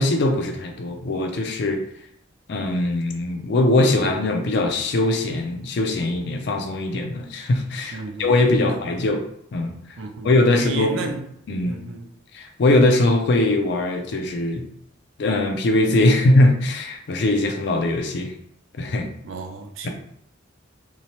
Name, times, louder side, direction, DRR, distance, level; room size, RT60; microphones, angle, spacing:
voice 1, 0.0-1.8 2.5-9.2 9.5-9.8 10.2-11.1 11.5-11.8 12.3-14.7 15.2-18.3 18.8-19.1 19.8-19.9, left 2 dB, 60° left, 0.4 m, -21 dB
voice 2, 7.9-8.8 10.0-11.3 11.7-12.1 19.2-19.9, right 3 dB, 75° right, 0.4 m, -33 dB
2.7 x 2.0 x 2.9 m
head